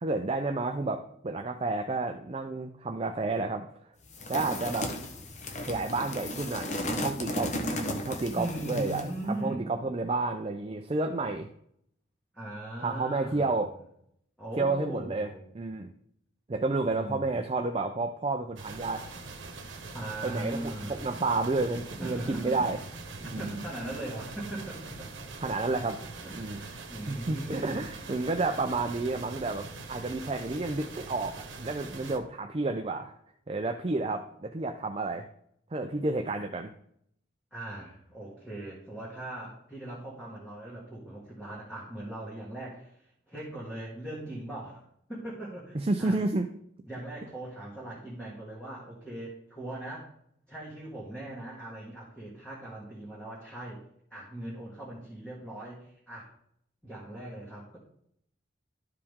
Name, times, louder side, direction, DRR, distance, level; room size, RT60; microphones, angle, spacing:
voice 1, 0.0-3.7 4.3-4.9 5.7-11.5 12.8-13.7 14.6-15.3 15.5-15.9 16.5-19.0 20.2-22.8 23.2-23.6 25.4-26.6 27.1-33.1 33.5-35.3 35.7-36.7 45.7-46.5, right 3 dB, 30° right, 4 dB, 0.4 m, -31 dB
sound 1, 4.1-9.2, left 1 dB, 35° left, 0.9 m, -35 dB
voice 2, 8.3-9.8 12.3-13.5 14.4-15.5 16.9-17.4 19.9-21.0 22.0-22.7 23.2-25.1 26.2-27.9 37.5-42.9 43.3-44.8 45.1-46.2 46.9-50.1 50.5-53.8 54.1-56.3 56.8-57.8, right 1 dB, 5° left, -7 dB, 1.9 m, -39 dB
sound 2, 18.6-32.2, right 3 dB, 75° right, 1.2 m, -43 dB
12.5 x 4.9 x 3.6 m, 0.70 s
head